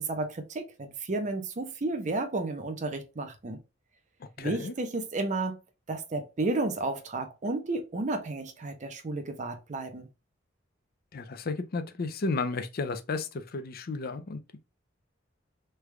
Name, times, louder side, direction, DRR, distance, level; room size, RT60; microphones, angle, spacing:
voice 1, 0.0-3.6 4.4-5.6 5.9-10.1, right 2 dB, 40° right, 0.6 m, -32 dB
voice 2, 4.2-4.7 11.1-14.6, left 3 dB, 50° left, 0.5 m, -33 dB
3.3 x 2.3 x 3.1 m
head